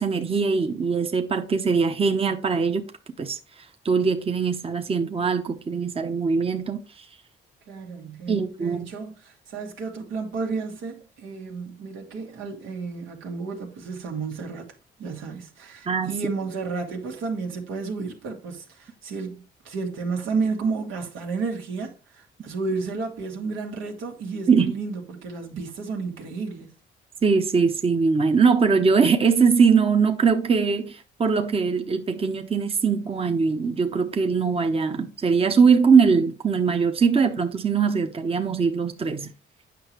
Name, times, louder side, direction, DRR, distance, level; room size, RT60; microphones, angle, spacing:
voice 1, 0.0-2.8 3.2-3.4 3.8-7.0 8.3-8.9 15.9-16.1 24.5-24.7 27.2-39.3, right 5 dB, 30° right, 0.8 m, -21 dB
voice 2, 7.7-14.7 15.0-26.8, right 4 dB, 85° right, 1.9 m, -32 dB
8.6 x 5.8 x 3.0 m
cardioid pair, 90°, 20 cm